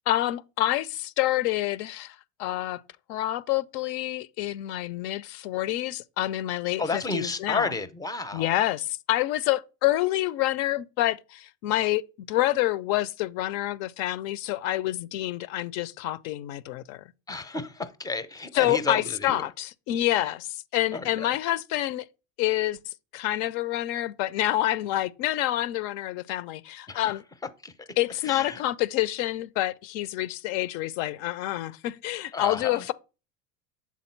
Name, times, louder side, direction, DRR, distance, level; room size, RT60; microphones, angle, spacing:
voice 1, 0.1-2.8 3.1-7.7 8.3-17.0 18.5-22.1 22.4-22.8 23.1-27.2 28.0-32.9, left 15 dB, 60° left, 0.5 m, -27 dB
voice 2, 6.8-8.5 17.3-19.5 20.2-20.3 20.9-21.3 26.9-27.1 27.6-27.9 28.2-28.6 32.3-32.8, left 3 dB, 10° left, 0.5 m, -32 dB
7.3 x 3.7 x 4.4 m
supercardioid pair, 120°, 40 cm